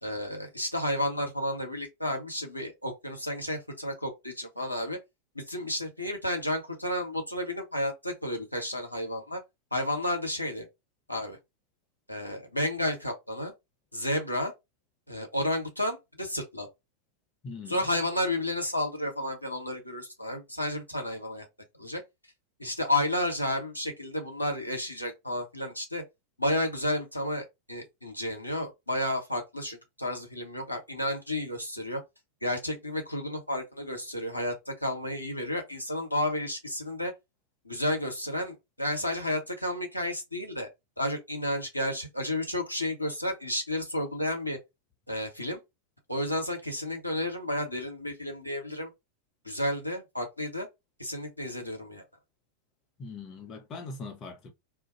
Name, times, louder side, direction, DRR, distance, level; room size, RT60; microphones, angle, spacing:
voice 1, 0.0-5.0 5.3-9.4 9.7-10.7 11.1-11.4 12.1-13.5 13.9-14.5 15.1-16.7 17.7-21.5 21.8-22.0 22.6-26.0 26.4-32.0 32.4-37.1 37.6-40.7 41.0-44.6 45.1-45.6 46.1-48.9 49.4-50.7 51.0-52.0, left 1 dB, 85° left, 0.9 m, -31 dB
voice 2, 17.4-17.8 53.0-54.5, left 3 dB, 30° left, 0.8 m, -41 dB
2.5 x 2.2 x 3.9 m
figure-of-eight pair, 90°, 0 cm